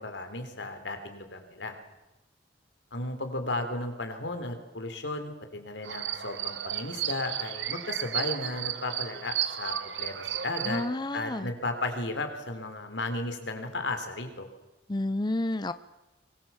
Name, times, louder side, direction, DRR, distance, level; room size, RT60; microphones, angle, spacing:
voice 1, 0.0-1.8 2.9-10.8 11.1-14.5, left 2 dB, 90° left, 6 dB, 3.5 m, -34 dB
sound 1, 5.8-10.9, right 10 dB, 85° right, 1.3 m, -33 dB
voice 2, 10.7-11.5 14.9-15.7, left 2 dB, 25° left, 13 dB, 0.7 m, -30 dB
24.0 x 20.5 x 7.3 m, 1.0 s
head